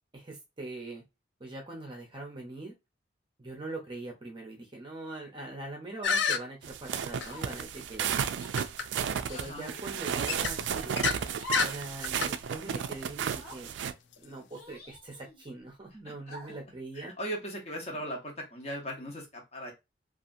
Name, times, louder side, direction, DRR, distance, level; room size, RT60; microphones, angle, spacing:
voice 1, 0.1-1.0 1.4-2.7 3.4-8.3 9.3-10.9 11.6-13.8 14.2-17.1 17.9-18.1, right 2 dB, 25° right, 0 dB, 0.6 m, -42 dB
sound 1, 6.0-6.4 7.2-7.3 8.6-8.9 9.3-9.4 10.3-11.2 11.5-11.7 12.0-12.3, left 6 dB, 75° left, 0.3 m, -29 dB
sound 2, 6.6-13.9, right 8 dB, 75° right, 0.3 m, -33 dB
sound 3, 7.3-7.7 8.4-8.5 9.6-10.0 11.3-11.8 12.2-12.3 13.1-13.6 14.5-15.4 16.3-16.7, right 2 dB, 55° left, 1.1 m, -44 dB
voice 2, 9.3-9.7 17.0-19.7, equal, 35° left, 0 dB, 0.8 m, -38 dB
2.7 x 2.4 x 2.5 m, 0.23 s
head